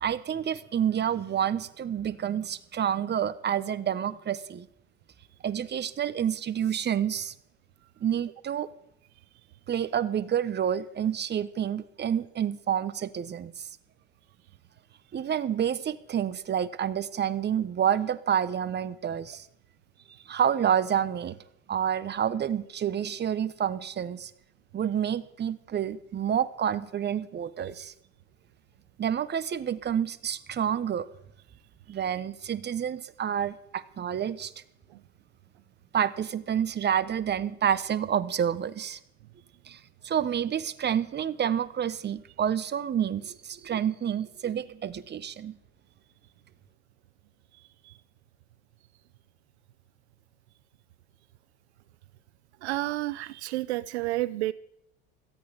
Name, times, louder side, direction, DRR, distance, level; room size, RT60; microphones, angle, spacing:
voice 1, 0.0-4.7 5.4-7.3 8.0-8.7 9.7-13.7 15.1-19.5 20.3-21.4 21.7-24.3 24.7-27.9 29.0-31.1 31.9-34.5 35.9-39.0 39.7-45.6, right 9 dB, 30° right, 16 dB, 1.2 m, -29 dB
voice 2, 52.6-54.5, right 17 dB, 80° right, 19 dB, 0.6 m, -30 dB
17.5 x 13.0 x 5.2 m, 0.76 s
hypercardioid pair, 80°, 33 cm